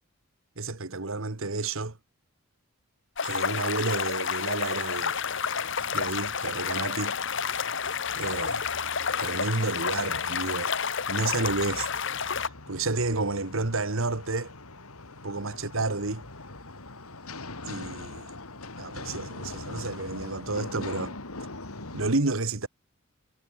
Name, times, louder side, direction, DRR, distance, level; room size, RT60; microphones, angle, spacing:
voice 1, 0.6-2.0 3.2-5.2 5.9-7.2 8.1-8.6 9.2-10.7 11.1-11.9 12.3-14.5 15.2-16.2 17.7-18.3 18.8-21.1 21.9-22.7, right 3 dB, 65° right, 1.5 m, -30 dB
sound 1, 3.2-12.5, left 6 dB, 55° left, 1.2 m, -30 dB
sound 2, 5.0-22.1, left 2 dB, 85° left, 3.3 m, -43 dB
head